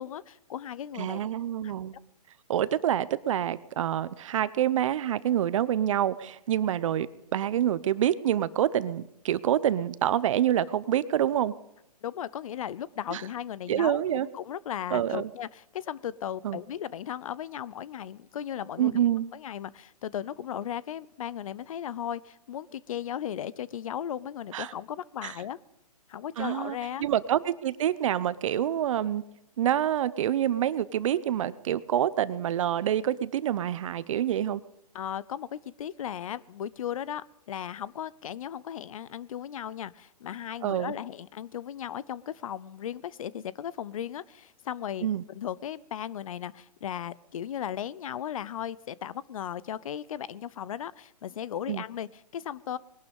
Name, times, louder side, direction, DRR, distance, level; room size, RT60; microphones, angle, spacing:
voice 1, 0.0-1.2 1.6-1.7 12.0-19.0 19.3-25.6 26.1-27.1 34.9-52.8, left 10 dB, 60° left, 20 dB, 0.7 m, -36 dB
voice 2, 0.9-1.9 2.5-7.1 7.3-11.5 13.1-13.2 13.7-14.3 14.9-15.3 16.4-16.6 18.8-19.3 24.5-24.7 25.2-25.3 26.4-29.2 29.6-34.6 40.6-40.9 45.0-45.2 51.7-51.8, right 11 dB, 55° right, 17 dB, 0.8 m, -27 dB
20.5 x 12.0 x 5.4 m, 0.84 s
hypercardioid pair, 145°, 20 cm